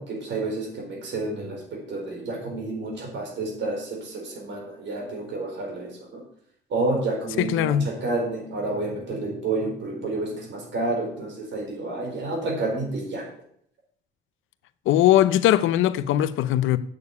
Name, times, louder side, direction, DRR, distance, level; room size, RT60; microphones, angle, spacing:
voice 1, 0.0-6.2 6.7-13.3, right 2 dB, 65° right, 4.6 m, -30 dB
voice 2, 7.4-7.8 14.9-16.8, left 12 dB, 85° left, 0.7 m, -20 dB
8.4 x 6.8 x 8.4 m
cardioid pair, 90°, 20 cm